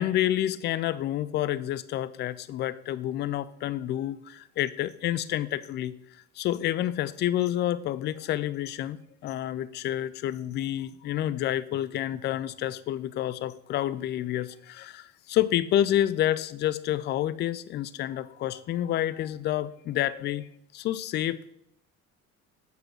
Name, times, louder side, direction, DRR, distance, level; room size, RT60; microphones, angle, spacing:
voice 1, 0.0-5.9 6.4-20.5 20.7-21.5, left 12 dB, 25° left, 16 dB, 0.4 m, -29 dB
8.1 x 4.7 x 6.1 m, 0.74 s
figure-of-eight pair, 55°, 42 cm